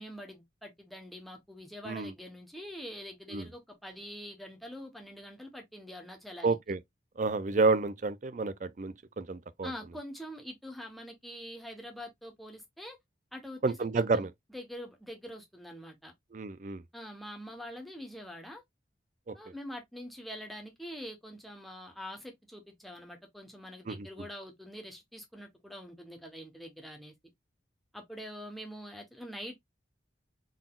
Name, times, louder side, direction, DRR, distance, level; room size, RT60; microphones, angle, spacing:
voice 1, 0.0-6.6 9.6-13.0 13.3-16.1 16.9-18.6 19.3-27.1 27.9-29.5, equal, ahead, 1.0 m, -45 dB
voice 2, 6.4-6.8 7.2-9.7 13.6-14.3 16.3-16.8 19.3-19.4 23.9-24.1, right 3 dB, 40° right, 0.4 m, -30 dB
4.0 x 3.7 x 2.3 m
head